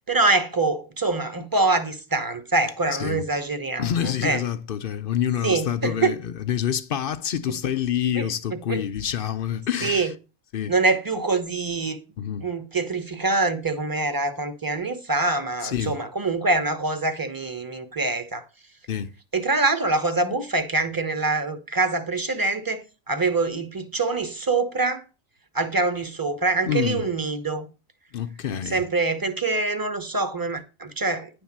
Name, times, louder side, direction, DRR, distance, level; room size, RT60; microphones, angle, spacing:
voice 1, 0.1-4.4 5.4-6.1 8.1-8.8 9.8-10.1 10.7-12.0 12.4-18.4 19.3-25.0 25.5-27.7 28.6-31.3, right 3 dB, 20° right, 0.8 m, -25 dB
voice 2, 2.9-3.2 3.8-10.1 10.5-10.7 12.2-12.5 15.6-15.9 18.9-19.1 26.7-27.1 28.1-28.8, left 9 dB, 55° left, 0.6 m, -27 dB
10.0 x 3.5 x 7.2 m
omnidirectional pair, 1.4 m